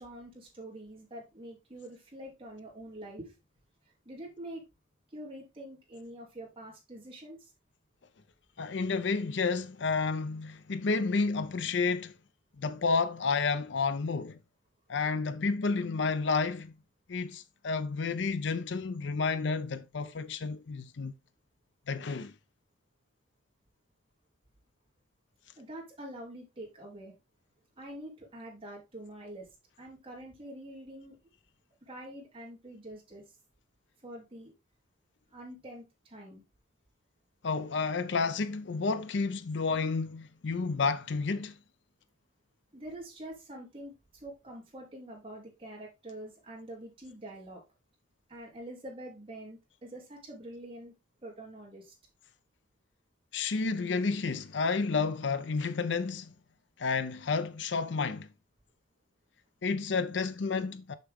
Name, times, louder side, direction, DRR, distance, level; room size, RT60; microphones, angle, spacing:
voice 1, 0.0-3.3 3.8-4.6 5.1-7.5 25.6-27.1 27.8-29.5 29.8-31.2 31.8-33.2 34.0-34.5 35.3-36.4 42.7-47.6 48.3-50.9 51.2-51.9, right 1 dB, 30° right, 2.8 m, -45 dB
voice 2, 8.6-12.1 12.6-14.4 14.9-16.7 17.1-21.1 21.9-22.3 37.4-41.6 53.3-56.3 56.8-58.3 59.6-60.9, left 4 dB, 70° left, 0.6 m, -30 dB
6.7 x 5.9 x 3.5 m
head